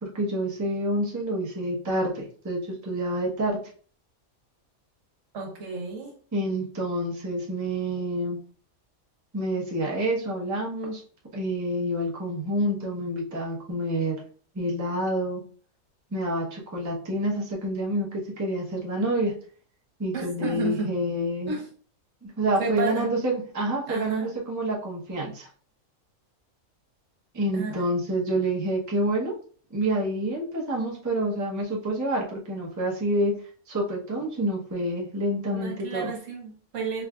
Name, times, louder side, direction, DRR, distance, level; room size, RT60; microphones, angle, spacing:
voice 1, 0.0-3.6 6.3-8.4 9.3-11.0 11.3-14.1 14.5-15.4 16.1-19.3 20.0-21.5 22.2-25.5 27.3-29.3 29.7-33.3 33.7-36.1, right 1 dB, 20° right, -3 dB, 0.6 m, -28 dB
voice 2, 5.3-6.1 20.1-21.0 21.5-21.7 22.6-23.1 23.9-24.3 27.5-27.7 35.5-37.1, right 4 dB, 70° right, 1 dB, 1.3 m, -32 dB
4.6 x 2.5 x 2.3 m, 0.44 s
omnidirectional pair, 1.4 m